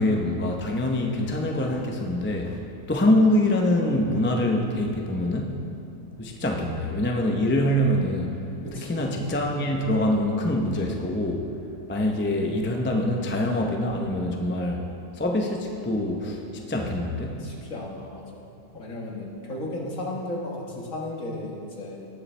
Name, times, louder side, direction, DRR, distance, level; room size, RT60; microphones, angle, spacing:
voice 1, 0.0-2.6 2.9-5.5 6.2-8.3 8.8-11.4 11.9-14.8 15.2-17.4, left 1 dB, 15° left, 1 dB, 0.4 m, -24 dB
voice 2, 8.6-9.1 17.4-22.1, left 1 dB, 60° left, -2 dB, 1.8 m, -35 dB
18.0 x 7.0 x 3.3 m, 2.6 s
omnidirectional pair, 1.6 m